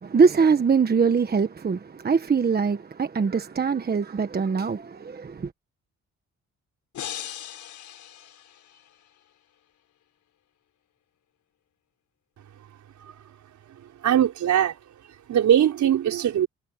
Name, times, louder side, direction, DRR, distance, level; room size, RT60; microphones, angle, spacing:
voice 1, 0.0-5.5, right 5 dB, 30° right, 1.3 m, -22 dB
sound 1, 6.9-9.1, left 11 dB, 70° left, 4.5 m, -39 dB
voice 2, 14.0-14.8 15.3-16.5, right 10 dB, 70° right, 5.2 m, -20 dB
cardioid pair, 90°, 30 cm